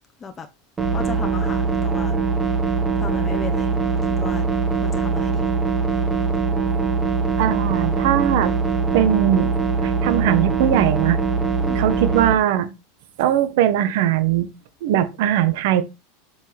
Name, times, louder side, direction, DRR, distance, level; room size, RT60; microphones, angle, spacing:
sound 1, 0.8-12.3, right 4 dB, 20° right, 1.6 m, -22 dB
voice 1, 0.9-2.2 3.0-3.7 4.0-4.4 4.7-5.5 11.6-11.9, left 5 dB, 20° left, 1.0 m, -35 dB
voice 2, 7.4-8.5 8.9-9.5 9.8-11.2 11.7-12.7 13.2-14.5 14.8-15.8, right 11 dB, 70° right, 1.3 m, -20 dB
7.2 x 5.5 x 3.5 m
hypercardioid pair, 115°, 0 cm